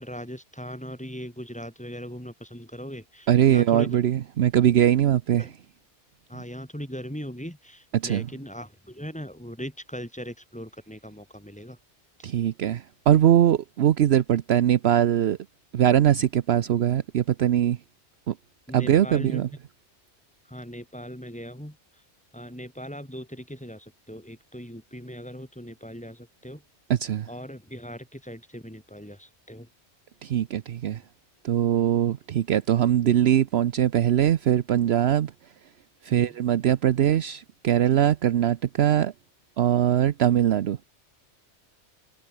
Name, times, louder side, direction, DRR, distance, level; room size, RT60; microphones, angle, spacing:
voice 1, 0.0-4.0 5.4-5.5 6.3-11.8 18.7-19.4 20.4-22.0 22.3-26.6 27.3-29.7 36.1-36.4, equal, 5° left, 5.1 m, -39 dB
voice 2, 3.3-5.5 7.9-8.3 12.2-15.4 15.7-17.8 18.3-18.4 18.7-19.5 26.9-27.3 30.2-31.0 31.4-35.3 36.0-39.1 39.6-40.8, right 10 dB, 65° right, 0.9 m, -21 dB
omnidirectional pair, 1.2 m